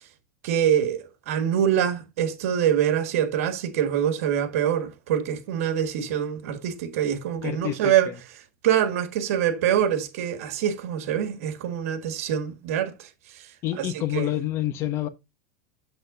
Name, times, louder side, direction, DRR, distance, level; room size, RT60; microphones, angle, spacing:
voice 1, 0.4-8.1 8.6-13.1 13.3-13.5 13.8-13.9 14.1-14.3, right 9 dB, 75° right, 1.7 m, -25 dB
voice 2, 7.4-8.1 13.6-15.1, left 13 dB, 35° left, 1.0 m, -28 dB
7.9 x 7.6 x 2.5 m
supercardioid pair, 160°, 8 cm